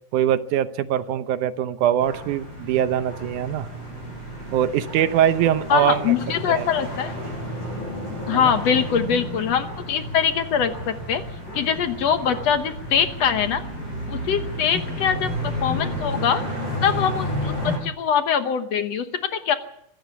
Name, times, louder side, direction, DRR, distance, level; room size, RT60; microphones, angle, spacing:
voice 1, 0.1-3.7 4.5-6.1 6.5-6.7 8.3-8.6, right 10 dB, 80° right, 12 dB, 2.3 m, -22 dB
sound 1, 2.0-17.8, equal, 45° left, 8.2 m, -31 dB
voice 2, 5.7-7.1 8.3-11.2 11.5-13.6 14.1-16.4 16.8-19.1 19.3-19.5, left 8 dB, 65° left, 9 dB, 2.0 m, -23 dB
25.0 x 13.0 x 8.2 m, 0.75 s
omnidirectional pair, 3.6 m